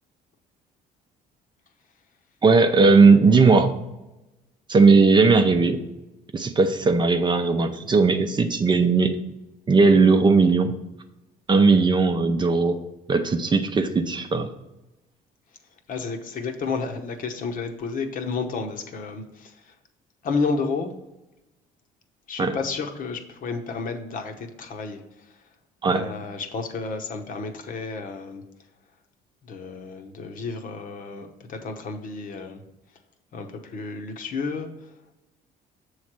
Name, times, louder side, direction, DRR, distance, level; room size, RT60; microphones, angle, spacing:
voice 1, 2.4-3.7 4.7-5.8 6.3-9.2 9.7-10.7 11.5-12.8 13.1-14.5 22.4-22.6 25.8-26.1, right 4 dB, 25° right, 7 dB, 0.5 m, -18 dB
voice 2, 15.9-19.7 20.2-20.9 22.3-25.0 25.9-28.4 29.4-32.6 33.3-34.7, left 4 dB, 55° left, 5 dB, 0.9 m, -31 dB
7.0 x 3.2 x 5.9 m, 0.99 s
cardioid pair, 110°, 17 cm